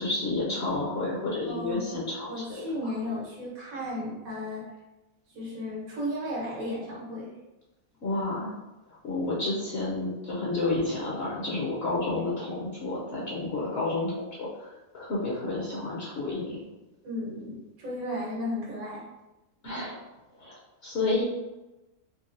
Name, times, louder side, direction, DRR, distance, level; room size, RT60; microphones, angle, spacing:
voice 1, 0.0-2.6 8.0-8.5 9.0-16.6 19.6-20.0 20.4-21.2, left 2 dB, 60° left, -5 dB, 0.8 m, -30 dB
voice 2, 1.5-4.7 5.3-7.4 17.0-19.0, left 1 dB, 85° right, -6 dB, 1.5 m, -34 dB
3.8 x 2.1 x 2.5 m, 1.0 s
omnidirectional pair, 1.4 m